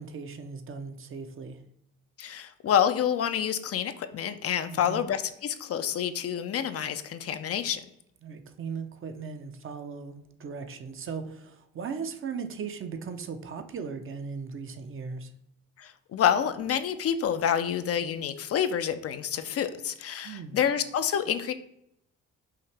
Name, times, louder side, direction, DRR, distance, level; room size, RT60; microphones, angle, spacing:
voice 1, 0.0-1.6 4.7-5.0 8.2-15.3 20.2-20.6, right 5 dB, 45° right, 7 dB, 0.6 m, -38 dB
voice 2, 2.2-7.8 15.8-21.5, left 9 dB, 50° left, 10 dB, 0.4 m, -28 dB
5.6 x 2.8 x 3.3 m, 0.76 s
cardioid pair, 90°, 30 cm